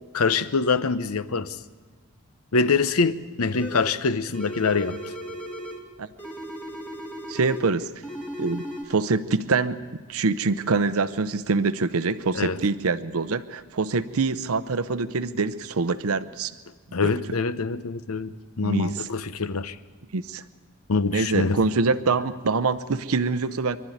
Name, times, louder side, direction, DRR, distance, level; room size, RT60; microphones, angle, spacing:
voice 1, 0.1-1.6 2.5-5.1 12.3-12.6 16.9-19.8 20.9-21.6, left 4 dB, 85° left, 0.8 m, -24 dB
sound 1, 3.5-4.0 4.3-5.9 6.2-7.7 8.0-8.8, equal, 5° left, 2.3 m, -36 dB
voice 2, 7.3-7.9 8.4-8.6 8.9-9.8 10.1-16.5 17.0-17.1 18.6-18.9 20.1-20.4 21.1-23.8, right 4 dB, 80° right, 0.7 m, -25 dB
25.5 x 12.0 x 9.2 m
head